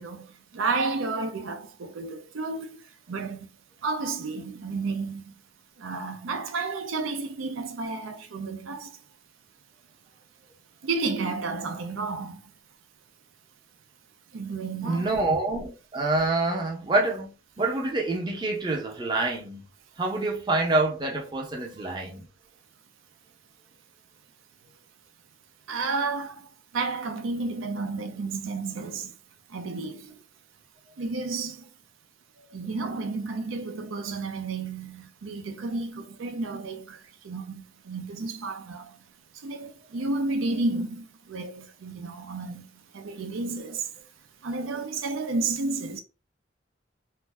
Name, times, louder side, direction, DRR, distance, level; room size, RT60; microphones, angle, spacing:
voice 1, 0.0-2.8 3.1-3.5 3.8-5.4 5.8-9.0 10.8-12.5 14.3-15.2 25.7-29.1 29.5-30.2 31.0-31.7 32.5-39.0 39.3-43.9 44.4-46.0, right 3 dB, 85° right, 0.5 m, -32 dB
voice 2, 14.8-19.6 20.0-22.3, right 2 dB, 25° right, 0.6 m, -27 dB
2.5 x 2.1 x 3.3 m
head